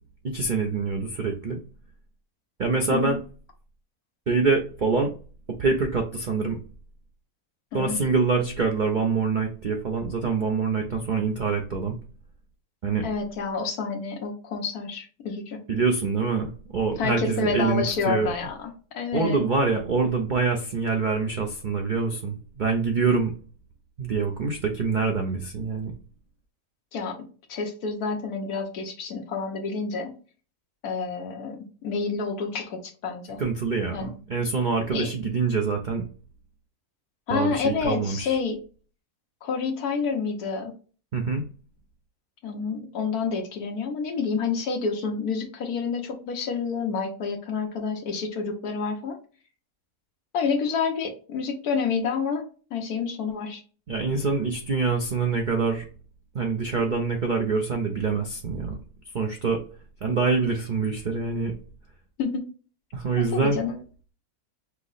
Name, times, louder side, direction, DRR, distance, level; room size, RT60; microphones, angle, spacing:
voice 1, 0.2-1.6 2.6-3.2 4.3-5.1 5.6-6.6 7.7-12.0 12.8-13.0 15.7-18.3 19.1-23.3 24.0-25.9 33.4-36.1 37.3-38.4 41.1-41.4 53.9-55.8 56.3-58.8 59.1-59.6 60.0-61.5 62.9-63.6, right 4 dB, 65° right, 3 dB, 0.4 m, -25 dB
voice 2, 13.0-15.6 17.0-19.4 26.9-27.2 27.5-30.1 30.8-33.4 33.9-34.1 34.9-35.1 37.3-38.6 39.4-40.7 42.4-49.2 50.3-52.4 52.7-53.6 62.2-62.4 63.3-63.8, left 5 dB, 75° left, 3 dB, 1.4 m, -28 dB
5.6 x 2.0 x 3.9 m, 0.38 s
omnidirectional pair, 1.6 m